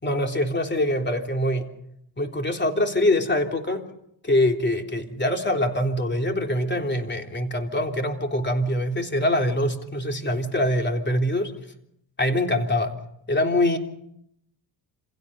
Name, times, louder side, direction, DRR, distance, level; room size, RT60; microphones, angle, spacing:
voice 1, 0.0-1.7 2.2-3.9 4.2-11.5 12.2-13.0 13.3-13.8, left 1 dB, 25° left, 4 dB, 3.5 m, -24 dB
27.0 x 17.0 x 6.7 m, 0.75 s
cardioid pair, 80°, 45 cm